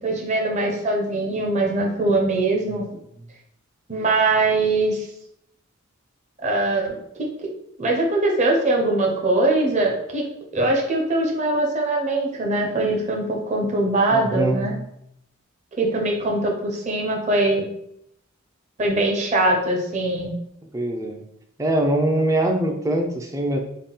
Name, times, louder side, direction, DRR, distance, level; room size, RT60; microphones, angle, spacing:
voice 1, 0.0-2.8 3.9-5.0 6.4-6.9 7.8-10.2 10.5-14.7 15.8-17.6 18.8-20.3, right 2 dB, 35° right, -1 dB, 0.7 m, -22 dB
voice 2, 14.1-14.7 20.6-21.2 21.6-23.6, right 1 dB, 15° right, 3 dB, 0.4 m, -23 dB
3.6 x 2.3 x 3.8 m, 0.76 s
head